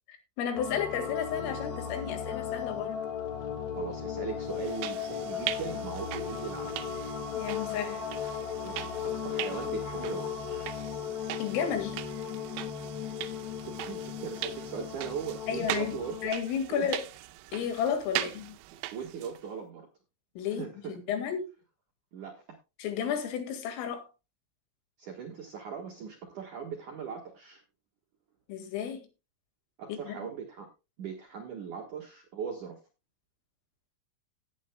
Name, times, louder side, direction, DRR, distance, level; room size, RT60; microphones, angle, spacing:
voice 1, 0.1-3.0 7.4-8.0 11.4-12.0 15.5-16.0 16.2-17.1 17.5-18.6 20.4-21.5 22.8-24.1 28.5-29.1 29.9-30.2, left 8 dB, 80° left, 4.5 m, -32 dB
sound 1, 0.6-16.3, left 7 dB, 55° left, 2.1 m, -36 dB
voice 2, 3.8-6.8 8.6-10.7 13.6-16.2 16.7-16.9 18.1-18.3 18.7-19.9 20.5-21.0 22.1-22.5 25.0-27.6 29.8-30.7 31.0-32.8, right 7 dB, 65° right, 2.0 m, -39 dB
sound 2, 4.5-19.5, right 16 dB, 85° right, 3.1 m, -40 dB
17.5 x 8.9 x 2.2 m
omnidirectional pair, 5.8 m